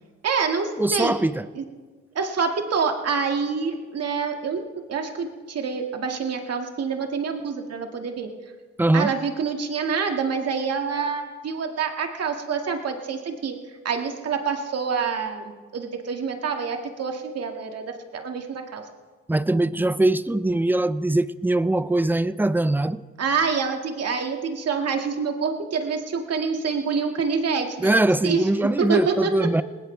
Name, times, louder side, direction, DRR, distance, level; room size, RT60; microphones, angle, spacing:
voice 1, 0.2-1.2 1.6-1.7 2.2-4.6 4.9-8.3 8.9-13.6 13.8-17.8 18.1-18.8 23.2-29.5, right 5 dB, 55° right, 3 dB, 2.1 m, -26 dB
voice 2, 0.8-1.5 8.8-9.1 19.3-23.0 27.8-29.6, right 2 dB, 5° right, 15 dB, 0.5 m, -22 dB
19.5 x 17.5 x 3.4 m, 1.4 s
cardioid pair, 90°, 30 cm